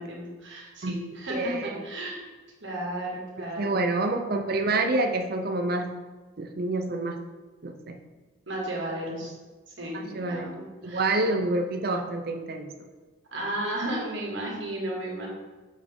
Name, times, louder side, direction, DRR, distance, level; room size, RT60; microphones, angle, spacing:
voice 1, 0.0-2.2 2.6-3.8 8.5-9.3 9.8-11.1 13.3-15.3, right 1 dB, 65° right, -3 dB, 2.1 m, -34 dB
voice 2, 1.3-1.8 3.6-5.9 6.4-7.1 7.6-8.0 9.9-10.5 10.8-12.9, right 2 dB, 45° right, 5 dB, 0.5 m, -28 dB
7.2 x 6.0 x 3.6 m, 1.3 s
head